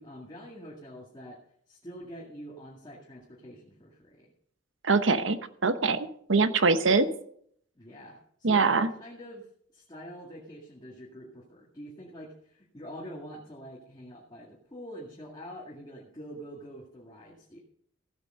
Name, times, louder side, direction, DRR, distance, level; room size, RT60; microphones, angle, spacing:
voice 1, 0.0-1.4 1.7-4.3 7.8-17.6, equal, 20° left, -3 dB, 2.1 m, -45 dB
voice 2, 4.8-7.1 8.4-8.9, right 4 dB, 70° right, 11 dB, 1.0 m, -23 dB
15.5 x 8.2 x 5.4 m, 0.65 s
head